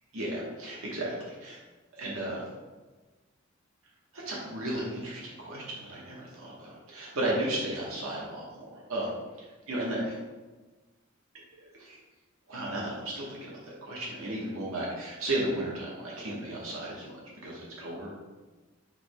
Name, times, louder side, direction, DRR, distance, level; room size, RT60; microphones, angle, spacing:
voice 1, 0.1-1.6 1.9-2.4 4.1-9.1 9.4-10.2 11.5-12.0 12.5-17.1 17.4-18.1, right 1 dB, 80° right, -4 dB, 1.1 m, -34 dB
5.0 x 2.2 x 4.6 m, 1.2 s
head